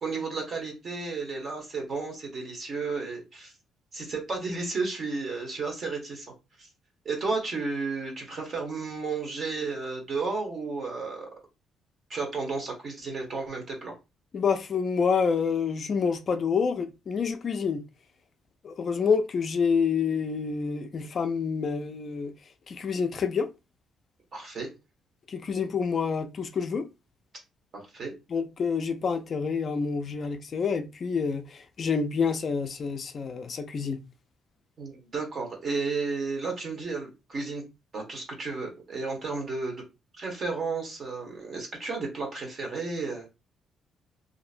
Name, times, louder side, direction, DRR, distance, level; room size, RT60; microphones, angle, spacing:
voice 1, 0.0-3.5 3.9-6.3 6.6-6.7 7.0-11.3 12.1-14.0 24.3-24.7 27.7-28.1 34.8-37.6 37.9-39.8 40.2-43.3, right 4 dB, 40° right, 1.1 m, -33 dB
voice 2, 14.3-17.8 18.6-22.3 22.7-23.5 25.3-26.9 28.3-34.0, left 5 dB, 40° left, 0.3 m, -28 dB
2.8 x 2.6 x 2.5 m
cardioid pair, 140°, 0 cm